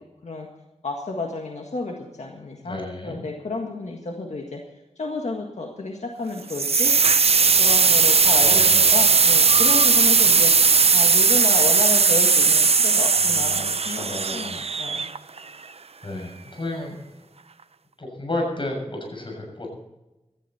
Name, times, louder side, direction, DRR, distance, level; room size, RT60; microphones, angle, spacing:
voice 1, 0.8-4.6 5.0-6.9 7.6-10.5 10.9-15.1, left 3 dB, 90° left, 1 dB, 1.8 m, -31 dB
voice 2, 2.6-3.2 8.4-9.1 13.2-14.6 16.0-17.0 18.0-19.7, left 1 dB, 50° left, 1 dB, 7.0 m, -32 dB
sound 1, 6.5-15.4, right 5 dB, 60° right, 0.6 m, -18 dB
17.0 x 13.5 x 4.3 m, 1.0 s
wide cardioid pair, 65°, 11 cm